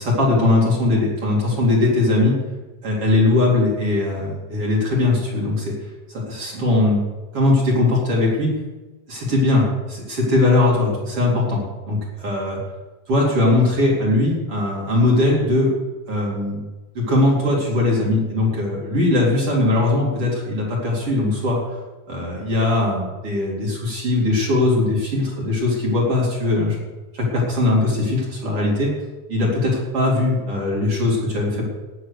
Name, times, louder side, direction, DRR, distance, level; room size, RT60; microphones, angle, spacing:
voice 1, 0.0-2.3 2.8-5.7 6.1-7.0 7.3-8.5 9.1-12.6 13.1-15.7 16.1-16.6 17.0-21.6 22.1-26.8 27.1-28.9 29.3-31.7, left 2 dB, 50° right, -3 dB, 3.5 m, -20 dB
12.5 x 10.5 x 6.5 m, 1.1 s
omnidirectional pair, 3.6 m